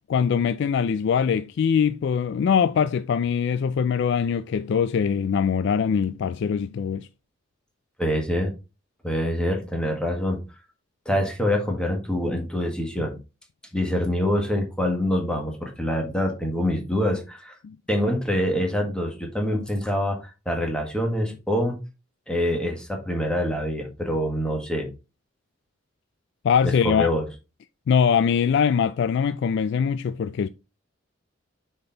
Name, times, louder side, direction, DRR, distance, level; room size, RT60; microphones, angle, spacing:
voice 1, 0.1-7.1 17.6-17.8 26.4-27.1 27.9-30.5, left 7 dB, 65° left, 0.3 m, -22 dB
voice 2, 8.0-8.5 9.0-10.4 11.0-13.2 13.7-17.5 17.9-20.2 20.4-21.8 22.3-24.9 26.8-27.2, equal, 5° left, 1.6 m, -25 dB
6.6 x 4.4 x 3.9 m
head